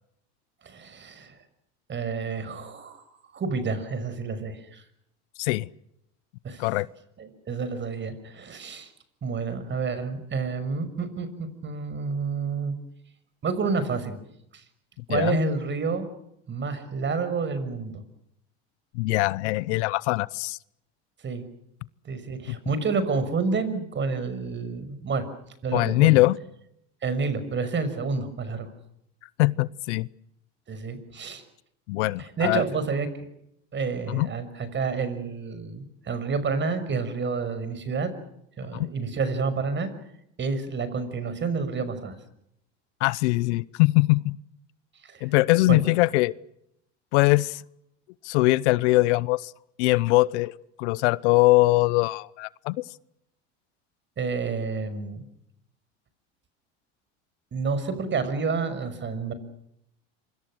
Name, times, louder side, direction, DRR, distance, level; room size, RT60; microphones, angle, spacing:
voice 1, 0.6-1.3 1.9-3.1 3.3-4.8 6.4-6.7 7.2-8.9 9.2-12.7 13.4-14.2 14.5-14.6 15.1-16.1 16.5-18.0 21.2-21.4 22.0-25.2 25.6-26.2 27.0-28.7 30.7-31.4 32.2-33.1 33.7-38.1 38.6-39.9 40.4-42.2 45.0-45.3 45.7-45.8 54.2-55.2 57.5-59.3, right 4 dB, 30° right, 13 dB, 6.0 m, -29 dB
voice 2, 5.4-5.7 6.6-6.9 15.1-15.4 18.9-20.6 22.5-22.6 25.7-26.4 29.4-30.1 31.9-32.6 34.1-34.3 38.7-38.9 43.0-44.4 45.2-46.3 47.1-47.6 48.2-49.5 49.8-50.5 50.8-52.8, left 21 dB, 75° left, 21 dB, 0.9 m, -22 dB
26.5 x 25.5 x 6.3 m, 0.78 s
supercardioid pair, 100°, 35 cm